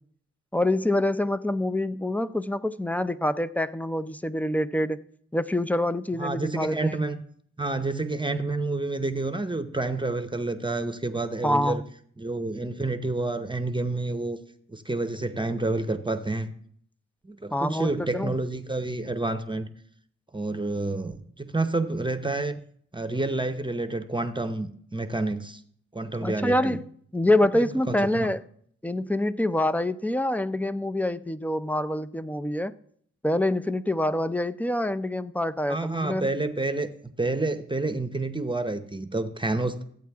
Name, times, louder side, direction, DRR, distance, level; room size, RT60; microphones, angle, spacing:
voice 1, 0.5-5.0 5.3-7.0 11.4-11.8 17.5-18.3 26.2-26.8 27.1-28.4 28.8-32.7 33.2-36.3, left 1 dB, 5° left, 0.5 m, -26 dB
voice 2, 6.2-7.2 7.6-11.8 12.2-14.4 14.7-16.5 17.2-19.7 20.3-22.6 22.9-25.6 25.9-26.8 27.5-28.3 35.7-39.8, right 2 dB, 15° right, 0.8 m, -29 dB
14.0 x 8.4 x 3.5 m
cardioid pair, 55°, 30 cm